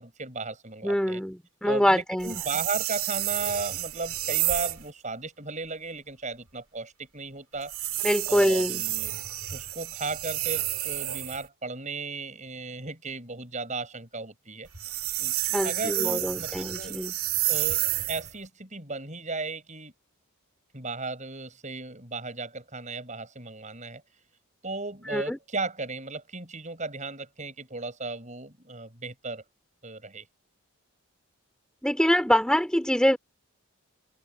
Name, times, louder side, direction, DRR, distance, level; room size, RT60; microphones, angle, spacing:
voice 1, 0.0-1.2 1.6-7.7 8.3-9.2 9.5-14.7 15.2-15.3 15.6-17.0 17.5-19.9 20.7-24.0 24.6-29.4 29.8-30.3, right 3 dB, 35° right, 7.6 m, -36 dB
voice 2, 0.8-2.3 8.0-8.8 15.5-17.1 25.1-25.4 31.8-33.2, equal, 5° left, 2.7 m, -24 dB
sound 1, 2.2-4.9 7.6-11.5 14.7-18.3, right 15 dB, 80° right, 1.9 m, -30 dB
open air
head